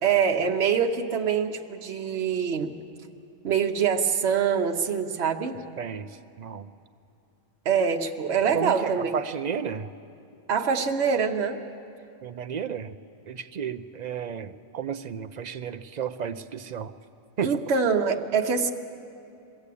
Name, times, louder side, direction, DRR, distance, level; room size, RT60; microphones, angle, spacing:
voice 1, 0.0-2.7 3.4-5.6 7.6-9.1 10.5-11.6 17.4-18.7, right 6 dB, 70° right, 3 dB, 1.2 m, -24 dB
voice 2, 5.8-6.1 6.4-6.7 8.5-9.9 12.2-12.9 13.3-16.9 17.4-17.5, right 7 dB, 50° right, 10 dB, 0.6 m, -32 dB
22.5 x 15.0 x 8.4 m, 2.6 s
omnidirectional pair, 1.2 m